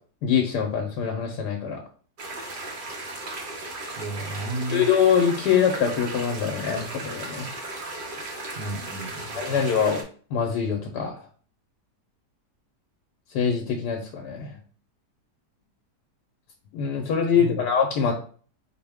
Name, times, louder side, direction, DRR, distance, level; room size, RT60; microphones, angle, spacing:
voice 1, 0.2-1.8 4.7-7.5 9.4-10.0 10.3-11.2 13.3-14.6 16.7-18.1, left 7 dB, 80° left, 2 dB, 1.2 m, -24 dB
sound 1, 2.2-10.0, right 2 dB, 50° right, 0.6 m, -36 dB
voice 2, 3.9-4.9 8.5-9.6 17.4-17.6, right 2 dB, 65° right, 3 dB, 1.2 m, -33 dB
4.6 x 2.1 x 3.4 m, 0.43 s
omnidirectional pair, 1.8 m